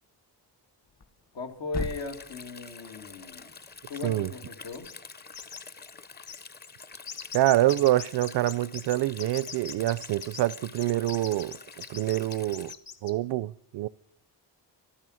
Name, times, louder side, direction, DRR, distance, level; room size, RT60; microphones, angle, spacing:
Thump thud, 0.8-4.9, left 4 dB, 40° left, 1.3 m, -42 dB
voice 1, 1.3-3.5 3.9-4.9, left 3 dB, 85° left, 2.3 m, -37 dB
Stream, 1.7-12.7, left 4 dB, 25° left, 0.6 m, -47 dB
sound 1, 4.7-5.1 5.3-5.6 5.9-6.0 6.3-13.1, left 6 dB, 55° left, 2.0 m, -41 dB
voice 2, 7.3-12.7 13.0-13.9, right 15 dB, 70° right, 0.5 m, -26 dB
14.0 x 12.5 x 6.3 m
cardioid pair, 95°, 42 cm